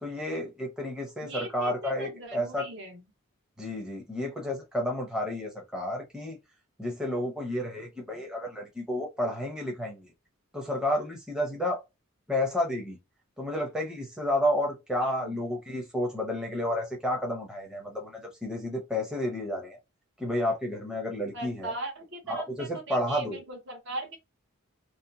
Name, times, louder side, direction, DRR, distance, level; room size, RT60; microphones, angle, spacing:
voice 1, 0.0-2.7 3.6-6.4 6.8-10.1 10.5-11.8 12.3-13.0 13.4-19.8 20.2-21.7 22.3-23.4, left 1 dB, 5° right, 0.7 m, -31 dB
voice 2, 1.2-3.0 15.0-15.4 21.3-24.2, right 2 dB, 55° right, 1.0 m, -39 dB
2.9 x 2.1 x 2.6 m
head